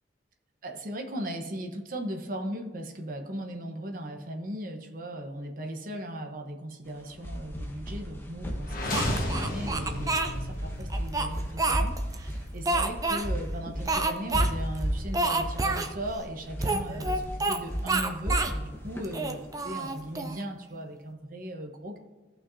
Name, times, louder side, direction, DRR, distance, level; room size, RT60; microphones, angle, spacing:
voice 1, 0.6-22.0, right 1 dB, 50° right, 3 dB, 1.1 m, -38 dB
sound 1, 6.9-20.1, equal, 10° left, 1.1 m, -34 dB
sound 2, 8.6-12.6, left 1 dB, 50° left, 1.6 m, -34 dB
Speech, 8.9-10.3 10.9-12.2 12.7-13.3 13.9-14.5 14.7-14.8 15.1-15.9 16.6-17.6 17.9-18.6 19.0-20.4, right 3 dB, 20° right, 0.6 m, -28 dB
15.5 x 5.9 x 2.8 m, 1.3 s
head